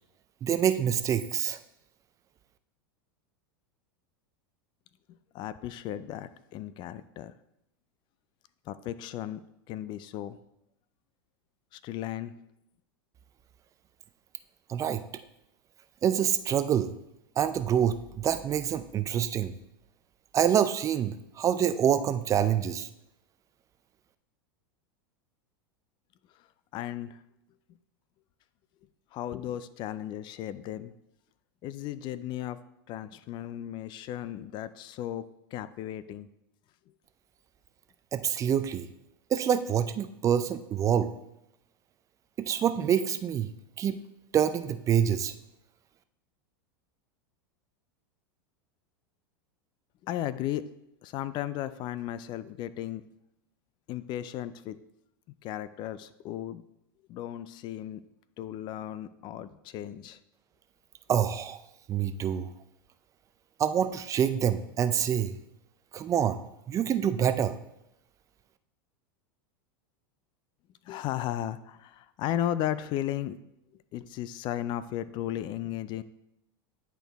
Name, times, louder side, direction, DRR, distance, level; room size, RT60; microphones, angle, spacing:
voice 1, 0.4-1.6 14.7-15.0 16.0-16.9 17.4-19.5 20.3-22.9 38.1-38.9 39.3-41.1 42.4-43.5 43.8-44.0 44.3-45.3 61.1-61.6 61.9-62.5 63.6-65.3 65.9-66.4 66.7-67.6, right 9 dB, 25° right, 11 dB, 0.4 m, -26 dB
voice 2, 5.1-7.3 8.7-9.4 9.7-10.4 11.7-12.3 26.7-27.2 29.1-30.9 31.6-32.6 32.9-36.3 50.0-50.7 51.0-53.0 53.9-54.8 55.4-56.6 57.1-58.0 58.4-60.2 70.8-73.4 73.9-76.0, left 12 dB, 40° left, 15 dB, 0.3 m, -35 dB
10.0 x 4.5 x 3.4 m, 0.82 s
hypercardioid pair, 120°, 12 cm